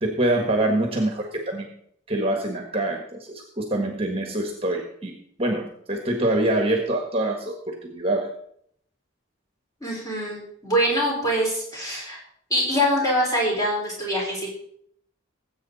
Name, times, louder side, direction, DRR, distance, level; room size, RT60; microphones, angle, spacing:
voice 1, 0.0-1.7 2.1-8.3, right 1 dB, 30° right, 3 dB, 1.5 m, -25 dB
voice 2, 9.8-12.2 12.5-14.5, equal, 20° left, -4 dB, 5.0 m, -24 dB
19.0 x 8.2 x 4.1 m, 0.68 s
head